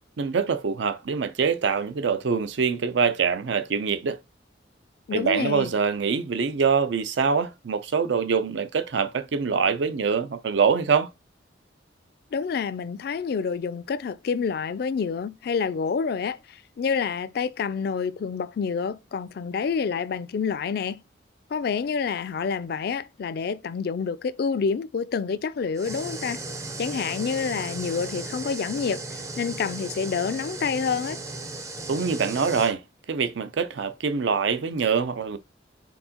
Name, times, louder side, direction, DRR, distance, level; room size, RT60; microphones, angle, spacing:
voice 1, 0.2-4.2 5.1-11.1 31.9-32.8 33.1-35.4, right 5 dB, 75° right, 0.5 m, -24 dB
voice 2, 5.1-5.7 12.3-21.0 21.5-26.4 26.8-31.2, left 6 dB, 55° left, 0.3 m, -28 dB
sound 1, 25.8-32.7, right 2 dB, 15° right, 0.4 m, -36 dB
4.5 x 3.7 x 2.8 m
head